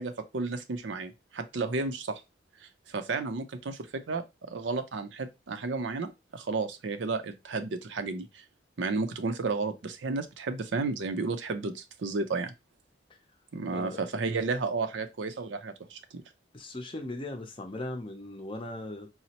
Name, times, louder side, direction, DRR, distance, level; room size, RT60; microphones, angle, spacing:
voice 1, 0.0-2.2 2.9-8.4 8.8-12.5 13.5-16.2, right 3 dB, 80° right, 0.5 m, -32 dB
voice 2, 13.7-14.0 16.5-19.1, left 2 dB, 30° left, 0.5 m, -38 dB
4.1 x 2.0 x 2.8 m
head